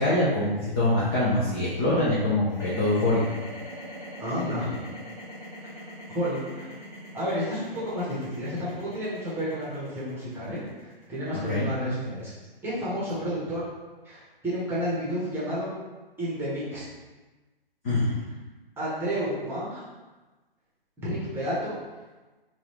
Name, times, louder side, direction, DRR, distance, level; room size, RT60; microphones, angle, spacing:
voice 1, 0.0-3.2 11.3-11.7 17.8-18.1, left 1 dB, 15° left, -8 dB, 0.3 m, -24 dB
sound 1, 2.5-12.7, equal, 55° left, 1.3 m, -42 dB
voice 2, 4.2-4.7 6.1-6.7 7.1-12.3 12.6-13.6 14.0-15.7 16.2-16.8 18.8-19.8 21.0-21.7, equal, 5° right, -8 dB, 0.9 m, -31 dB
3.9 x 2.3 x 3.0 m, 1.2 s
figure-of-eight pair, 130°, 29 cm